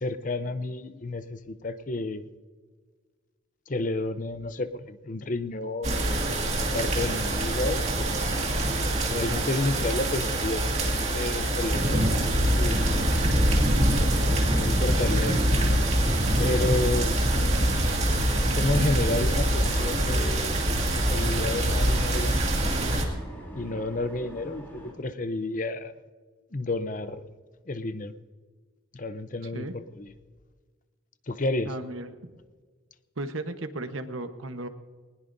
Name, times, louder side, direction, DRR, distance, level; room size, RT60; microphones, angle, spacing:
voice 1, 0.0-2.3 3.7-6.3 6.5-8.1 9.1-12.8 13.9-15.5 16.4-17.8 18.5-22.5 23.5-25.9 26.5-27.2 27.7-28.1 28.9-30.1 31.3-31.7, left 2 dB, 40° left, 12 dB, 0.7 m, -31 dB
sound 1, 5.8-23.1, right 1 dB, 35° right, 2.2 m, -24 dB
sound 2, 12.4-24.9, right 1 dB, 10° left, 3.2 m, -42 dB
voice 2, 31.6-32.1 33.2-34.7, right 2 dB, 80° right, 8 dB, 1.1 m, -35 dB
20.5 x 20.0 x 2.7 m, 1.5 s
head